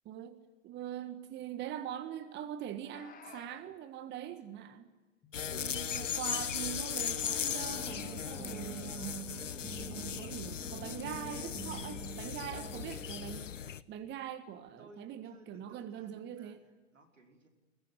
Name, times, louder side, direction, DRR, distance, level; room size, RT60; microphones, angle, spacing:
voice 1, 0.1-0.4 0.6-4.9 5.5-9.2 9.9-13.5 13.9-16.6, right 10 dB, 30° right, 9 dB, 1.7 m, -43 dB
sound 1, 2.8-3.7 5.2-6.0 7.1-8.1 9.4-9.8 10.7-11.4, left 6 dB, 25° left, 2.8 m, -53 dB
sound 2, 5.3-13.8, left 8 dB, 80° left, 1.0 m, -38 dB
sound 3, 7.6-13.0, right 5 dB, 10° right, 2.7 m, -47 dB
voice 2, 12.3-13.0 14.8-17.5, right 2 dB, 85° right, 2 dB, 5.3 m, -57 dB
21.5 x 19.0 x 10.0 m, 1.1 s
figure-of-eight pair, 105°, 37 cm